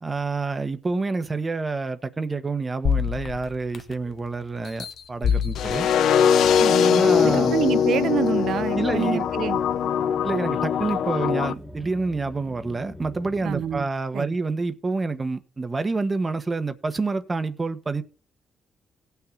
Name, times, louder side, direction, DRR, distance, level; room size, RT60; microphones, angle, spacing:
voice 1, 0.0-5.9 6.9-7.5 8.7-9.2 10.2-18.0, right 3 dB, 25° right, 1.3 m, -28 dB
sound 1, 2.8-4.1 4.6-6.8 7.4-7.5, left 7 dB, 60° left, 1.0 m, -28 dB
sound 2, 5.6-11.5, left 8 dB, 75° left, 0.6 m, -21 dB
voice 2, 6.6-9.6 13.4-13.9 14.1-14.4, right 9 dB, 70° right, 0.7 m, -27 dB
sound 3, 7.0-13.8, left 1 dB, 5° left, 1.7 m, -42 dB
17.5 x 5.9 x 3.9 m
cardioid pair, 90°, 0 cm